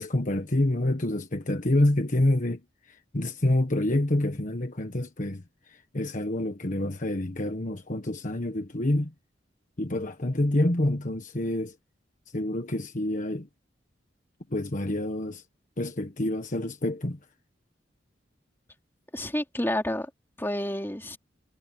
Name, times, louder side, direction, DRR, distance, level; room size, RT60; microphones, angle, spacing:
voice 1, 0.0-2.6 2.9-9.1 9.8-11.7 12.3-13.5 14.5-15.4 15.8-17.2, left 1 dB, 45° left, 1.4 m, -27 dB
voice 2, 19.1-20.1 20.4-21.2, left 1 dB, 10° left, 3.0 m, -29 dB
head